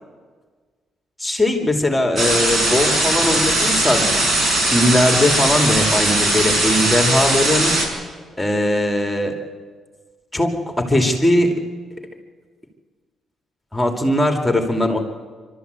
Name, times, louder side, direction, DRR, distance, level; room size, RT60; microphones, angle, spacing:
voice 1, 1.2-4.2 4.6-7.8 8.4-9.4 10.3-11.7 13.7-15.0, left 1 dB, 5° left, 4 dB, 2.4 m, -19 dB
sound 1, 2.2-7.9, right 1 dB, 45° right, 5.3 m, -19 dB
26.5 x 13.0 x 8.1 m, 1.5 s
cardioid pair, 90°, 0 cm